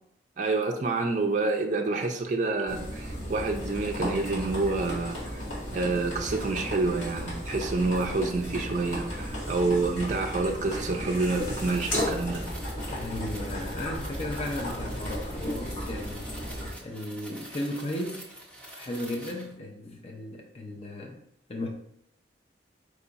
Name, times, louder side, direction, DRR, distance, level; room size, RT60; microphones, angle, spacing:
voice 1, 0.4-12.4, right 3 dB, 40° right, 2 dB, 0.4 m, -28 dB
voice 2, 1.0-1.3 12.9-16.3 16.8-18.2 18.7-21.2 21.5-21.7, left 1 dB, 35° left, 2 dB, 0.4 m, -35 dB
sound 1, 2.7-16.7, equal, 85° left, 1.7 m, -34 dB
sound 2, 11.1-19.5, right 1 dB, 5° left, 0.8 m, -46 dB
4.6 x 2.3 x 3.9 m, 0.71 s
head